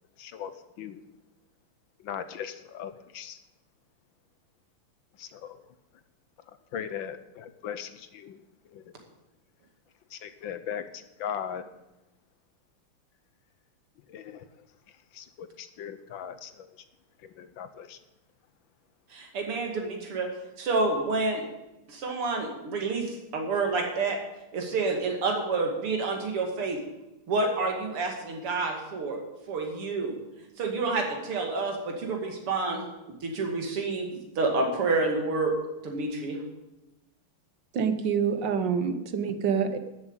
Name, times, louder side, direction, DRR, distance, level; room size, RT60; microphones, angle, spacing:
voice 1, 0.2-1.0 2.0-3.4 5.2-5.7 6.7-8.4 8.7-8.9 10.1-11.7 14.1-14.4 14.9-16.8 17.2-18.0, left 8 dB, 70° left, 11 dB, 1.4 m, -39 dB
voice 2, 19.1-20.3 20.6-21.4 21.9-24.2 24.5-26.8 27.3-29.2 29.5-30.1 30.6-32.9 33.2-35.5 35.8-36.4, right 3 dB, 80° right, 2 dB, 3.3 m, -28 dB
voice 3, 37.7-39.8, right 6 dB, 60° right, 9 dB, 1.6 m, -26 dB
12.5 x 7.8 x 8.9 m, 0.97 s
omnidirectional pair, 2.4 m